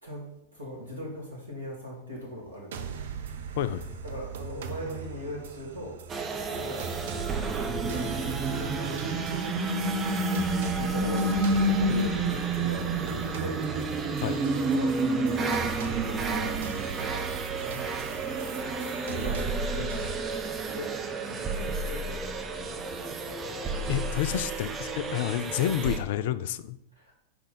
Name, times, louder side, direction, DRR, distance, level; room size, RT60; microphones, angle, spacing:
voice 1, 0.0-3.0 4.0-6.0 6.5-6.9 7.9-9.6 10.8-13.6 14.7-16.6 17.0-17.8 18.3-20.1 20.7-21.0 21.2-22.1 22.8-23.3 23.7-24.1 27.0-27.2, equal, 80° right, -3 dB, 2.4 m, -40 dB
sound 1, 2.7-20.2, right 7 dB, 60° right, 0.6 m, -39 dB
voice 2, 3.6-4.0 14.2-14.4 23.9-26.8, left 11 dB, 55° left, 14 dB, 0.4 m, -29 dB
sound 2, 6.1-26.0, right 2 dB, 25° right, 0.9 m, -30 dB
5.1 x 5.0 x 5.6 m, 0.77 s
figure-of-eight pair, 90°, 0 cm